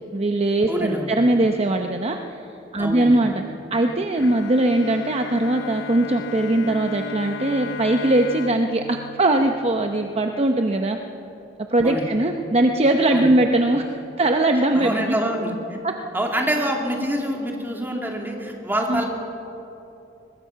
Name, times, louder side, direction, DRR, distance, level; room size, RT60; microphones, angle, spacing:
voice 1, 0.1-2.4 2.7-3.4 3.7-11.0 11.7-15.2 15.8-15.9 18.9-19.0, right 1 dB, 35° right, 4 dB, 0.8 m, -20 dB
voice 2, 0.7-1.1 2.8-3.2 11.8-12.1 13.1-13.3 14.7-15.5 16.1-19.0, right 1 dB, 10° right, 0 dB, 2.6 m, -26 dB
Bowed string instrument, 4.2-10.4, left 5 dB, 90° left, 0.9 m, -35 dB
22.5 x 20.5 x 5.8 m, 2.9 s
head